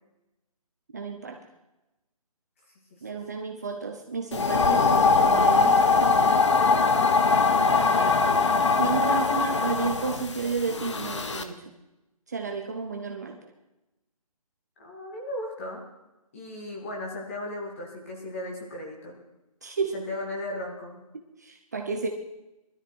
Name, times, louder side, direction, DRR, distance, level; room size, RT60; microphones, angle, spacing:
voice 1, 0.9-1.4 3.0-5.8 8.8-11.6 12.3-13.4 19.6-20.1 21.4-22.1, right 5 dB, 25° right, 3 dB, 0.9 m, -32 dB
sound 1, 4.3-11.4, left 4 dB, 50° left, 1.2 m, -22 dB
voice 2, 6.5-7.3 14.8-15.8 16.3-19.2 19.9-21.0, left 1 dB, 20° left, -1 dB, 2.6 m, -36 dB
20.5 x 13.0 x 4.6 m, 0.99 s
hypercardioid pair, 175°, 20 cm